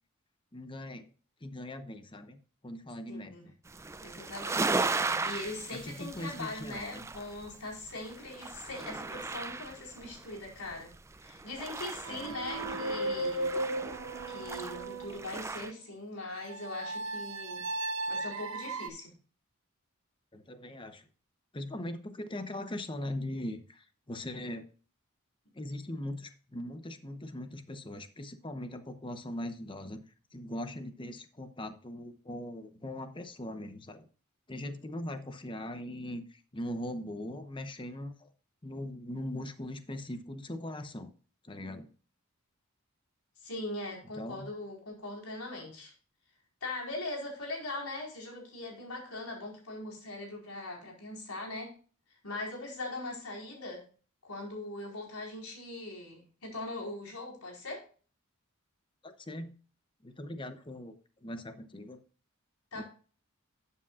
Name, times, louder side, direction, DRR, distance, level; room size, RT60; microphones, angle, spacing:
voice 1, 0.5-1.1 1.4-2.4 2.6-3.3 5.7-7.0 12.1-12.4 20.3-21.0 21.5-24.7 25.5-30.0 30.3-34.1 34.5-38.3 38.6-41.1 41.4-41.9 44.2-44.5 59.0-59.5 60.0-60.9 61.2-62.0 62.8-62.9, left 1 dB, 25° left, 9 dB, 0.9 m, -40 dB
voice 2, 3.1-3.5 4.0-10.9 11.2-13.6 14.3-17.6 18.1-19.1 43.4-45.9 46.6-51.7 52.2-53.8 54.2-57.8 62.7-62.8, left 2 dB, 85° left, -1 dB, 4.5 m, -41 dB
sound 1, 3.7-15.7, right 3 dB, 15° right, 0.4 m, -37 dB
sound 2, 12.0-15.4 16.5-18.9, right 2 dB, 65° right, 1.4 m, -36 dB
12.5 x 8.5 x 2.4 m, 0.39 s
head